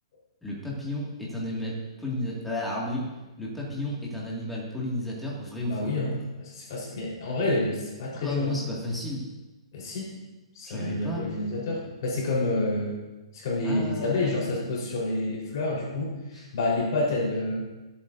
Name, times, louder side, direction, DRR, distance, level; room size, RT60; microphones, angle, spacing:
voice 1, 0.4-3.1 3.4-5.9 8.1-9.2 10.6-11.3 13.6-14.4 16.3-16.5, left 1 dB, ahead, -6 dB, 2.1 m, -33 dB
voice 2, 5.6-8.5 9.7-10.1 10.5-13.0 13.3-17.6, left 2 dB, 40° left, -4 dB, 4.1 m, -28 dB
24.5 x 8.5 x 2.7 m, 1.1 s
hypercardioid pair, 175°, 3 cm